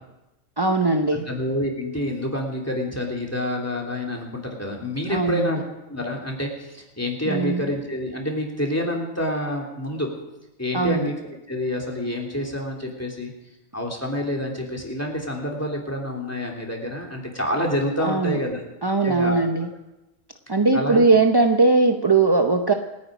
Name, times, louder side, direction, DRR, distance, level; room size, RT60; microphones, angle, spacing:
voice 1, 0.6-1.3 5.1-5.5 7.3-7.6 10.7-11.1 18.0-18.4 18.8-19.7 20.5-22.7, right 3 dB, 30° right, 5 dB, 0.5 m, -19 dB
voice 2, 1.1-5.6 5.9-10.1 10.6-13.3 13.7-18.6 19.0-19.4 20.7-21.0, left 1 dB, 10° left, 0 dB, 3.0 m, -28 dB
28.0 x 9.6 x 5.1 m, 0.97 s
omnidirectional pair, 1.5 m